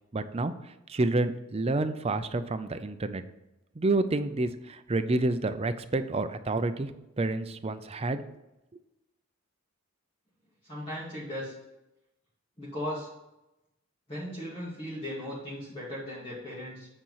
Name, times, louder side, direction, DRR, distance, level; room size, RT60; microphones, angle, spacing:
voice 1, 0.1-0.5 0.9-3.2 3.8-6.9 7.2-8.2, right 2 dB, 30° right, 10 dB, 0.5 m, -29 dB
voice 2, 10.6-11.5 12.6-13.1 14.1-16.9, left 1 dB, 25° left, -9 dB, 2.3 m, -37 dB
8.9 x 4.3 x 5.6 m, 0.93 s
head